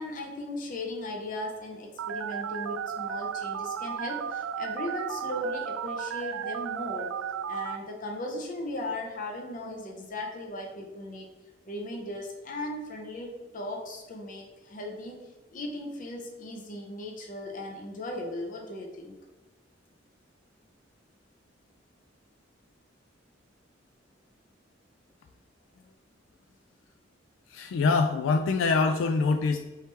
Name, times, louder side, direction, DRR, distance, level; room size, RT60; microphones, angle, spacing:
voice 1, 0.0-7.2 7.5-11.3 11.7-19.2, left 1 dB, 45° left, 1 dB, 0.6 m, -37 dB
Telephone, 2.0-7.8, right 8 dB, 75° right, 0.3 m, -34 dB
voice 2, 27.5-29.6, left 4 dB, 90° left, 6 dB, 0.3 m, -24 dB
4.6 x 3.1 x 3.3 m, 1.2 s
head